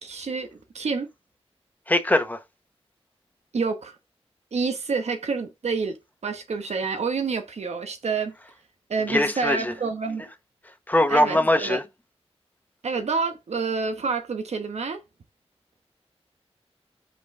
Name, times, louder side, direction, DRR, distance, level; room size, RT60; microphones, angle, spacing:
voice 1, 0.0-1.1 3.5-4.0 4.5-6.0 6.2-8.3 8.9-10.3 11.1-11.8 12.8-15.0, right 4 dB, 90° right, 1.2 m, -28 dB
voice 2, 1.9-2.4 9.1-9.7 10.9-11.8, left 1 dB, 15° left, 0.9 m, -21 dB
5.4 x 5.2 x 3.6 m
wide cardioid pair, 105°, 11 cm